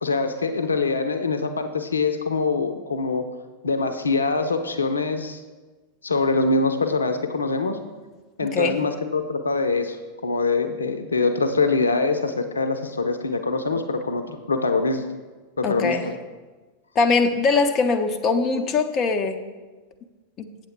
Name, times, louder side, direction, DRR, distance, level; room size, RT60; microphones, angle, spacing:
voice 1, 0.0-3.3 3.6-5.4 6.0-7.8 8.4-15.0 15.6-16.1, left 3 dB, 75° left, 8 dB, 0.6 m, -24 dB
voice 2, 8.4-8.8 15.6-16.1 17.0-19.4 20.4-20.5, left 4 dB, 30° left, 6 dB, 0.5 m, -22 dB
7.9 x 7.6 x 4.5 m, 1.3 s
figure-of-eight pair, 90°, 0 cm